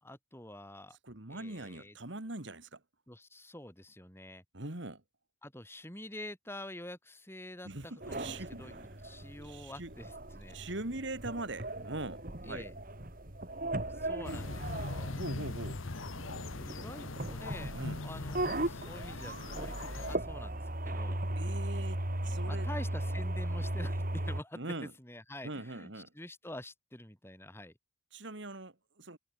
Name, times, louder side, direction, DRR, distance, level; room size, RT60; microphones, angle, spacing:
voice 1, 0.0-1.0 1.3-2.0 3.1-4.4 5.4-10.6 12.5-12.7 13.9-15.2 16.5-21.2 22.4-27.7, left 1 dB, 10° left, 4.7 m, -47 dB
voice 2, 1.0-2.8 4.5-5.0 7.6-8.9 9.4-9.9 10.5-12.6 15.1-15.8 17.7-18.0 21.4-22.7 24.5-24.9 25.4-26.1 28.1-29.2, right 2 dB, 60° right, 2.3 m, -42 dB
sound 1, 8.0-24.4, right 1 dB, 45° right, 2.6 m, -37 dB
sound 2, 14.2-20.2, left 2 dB, 75° left, 1.3 m, -41 dB
head